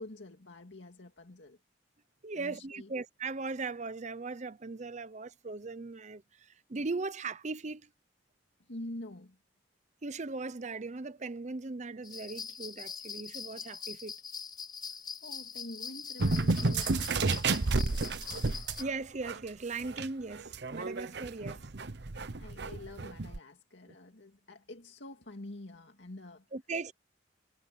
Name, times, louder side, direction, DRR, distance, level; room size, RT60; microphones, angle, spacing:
voice 1, 0.0-1.6 2.3-2.9 8.6-9.4 14.9-18.5 21.4-21.7 22.4-26.5, left 1 dB, 80° left, 2.2 m, -47 dB
voice 2, 2.2-6.2 6.7-7.8 10.0-14.2 18.8-21.6 26.5-26.9, right 3 dB, 40° right, 0.7 m, -38 dB
sound 1, 12.0-18.8, left 6 dB, 25° left, 5.7 m, -43 dB
sound 2, 16.2-18.9 19.2-19.4 19.8-23.4, right 3 dB, 65° right, 0.9 m, -31 dB
head